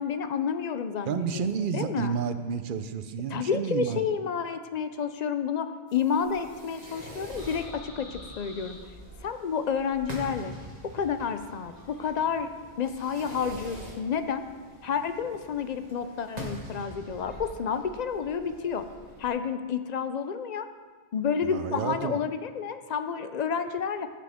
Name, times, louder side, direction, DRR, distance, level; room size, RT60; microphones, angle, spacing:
voice 1, 0.0-2.2 3.3-8.8 9.2-10.5 10.9-12.5 12.8-14.4 14.8-18.8 19.2-20.7 21.1-24.1, left 6 dB, 55° left, 9 dB, 0.5 m, -30 dB
voice 2, 1.1-4.0 21.4-22.2, right 6 dB, 60° right, 10 dB, 0.6 m, -30 dB
sound 1, 5.9-16.8, left 1 dB, 90° left, 2.0 m, -55 dB
Fireworks, 6.2-19.3, right 1 dB, 40° right, 1.5 m, -44 dB
14.5 x 6.0 x 3.5 m, 1.5 s
omnidirectional pair, 1.1 m